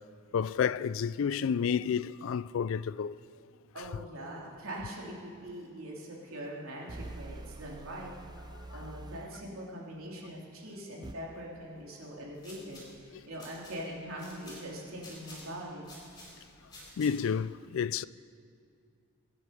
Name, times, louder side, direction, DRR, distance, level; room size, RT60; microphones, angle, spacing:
voice 1, 0.3-3.2 8.8-8.9 17.0-18.0, left 7 dB, 70° left, 0.3 m, -30 dB
voice 2, 3.7-8.1 8.7-15.8, right 1 dB, 80° right, 3.1 m, -42 dB
sound 1, 5.1-5.2 6.9-9.4 11.0-11.1, right 2 dB, 20° right, 0.4 m, -45 dB
sound 2, 12.2-17.4, left 1 dB, 20° left, 4.0 m, -52 dB
23.5 x 9.9 x 5.1 m
head